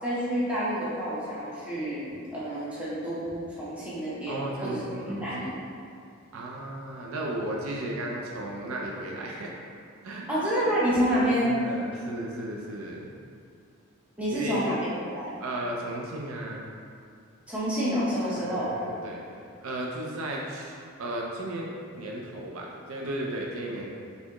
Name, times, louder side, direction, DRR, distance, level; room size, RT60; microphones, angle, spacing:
voice 1, 0.0-5.6 10.3-11.6 14.2-15.4 17.5-18.7, equal, 5° right, -10 dB, 0.9 m, -28 dB
voice 2, 4.3-5.5 6.3-9.5 10.0-10.3 11.2-13.1 14.3-14.6 15.4-16.7 18.4-20.7 21.0-21.7 21.9-23.9, right 1 dB, 75° right, -1 dB, 0.4 m, -35 dB
4.2 x 3.4 x 2.9 m, 2.4 s
head